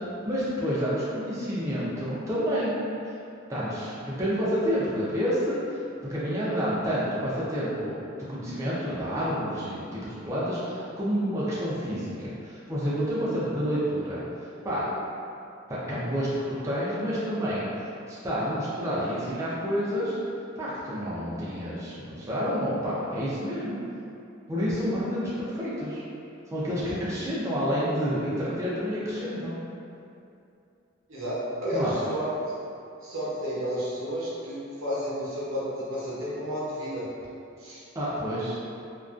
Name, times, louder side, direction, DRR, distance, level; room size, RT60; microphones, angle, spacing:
voice 1, 0.2-2.8 3.5-5.6 6.1-8.0 8.3-14.2 14.6-14.9 15.7-20.2 20.6-23.8 24.5-26.0 26.5-29.5 31.7-31.9 37.9-38.6, equal, 15° right, -9 dB, 0.3 m, -29 dB
voice 2, 31.6-32.3 33.0-37.0 37.6-37.8, equal, 85° right, -8 dB, 0.7 m, -31 dB
2.4 x 2.2 x 2.3 m, 2.6 s
head